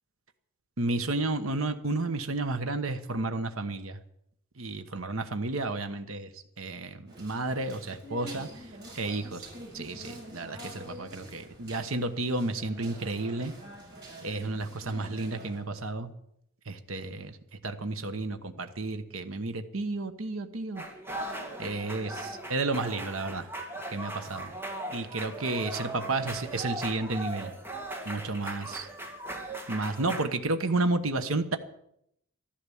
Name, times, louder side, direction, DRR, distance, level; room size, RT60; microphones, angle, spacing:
voice 1, 0.8-4.0 4.6-8.7 9.0-9.5 9.7-13.5 14.2-16.1 16.6-17.4 17.6-20.8 21.2-23.5 23.9-24.5 24.9-27.5 28.0-28.9 29.7-31.6, right 2 dB, 75° right, 9 dB, 1.2 m, -32 dB
sound 1, 7.1-15.6, right 1 dB, 50° right, 7.4 m, -46 dB
sound 2, 20.7-30.2, right 1 dB, 10° right, 2.3 m, -38 dB
13.5 x 11.5 x 7.2 m, 0.74 s
head